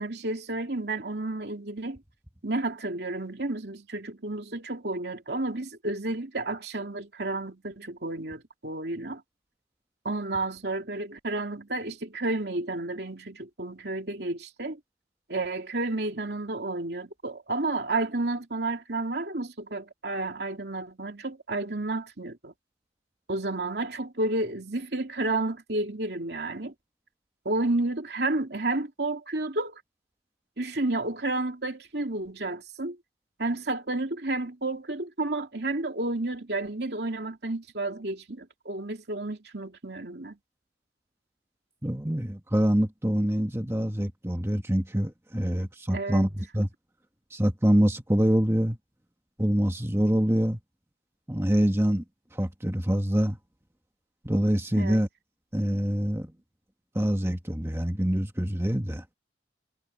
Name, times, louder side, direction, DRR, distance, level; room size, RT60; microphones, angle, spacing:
voice 1, 0.0-2.0 2.4-9.2 10.0-14.8 15.3-22.5 23.3-26.7 27.4-29.8 30.6-33.0 33.4-40.4 45.4-46.3 54.7-55.0, right 2 dB, 65° right, 2.9 m, -31 dB
voice 2, 41.8-46.7 47.3-48.8 49.4-50.6 51.3-52.0 52.3-53.4 54.2-55.1 55.5-56.3 56.9-59.0, equal, 15° right, 1.6 m, -25 dB
head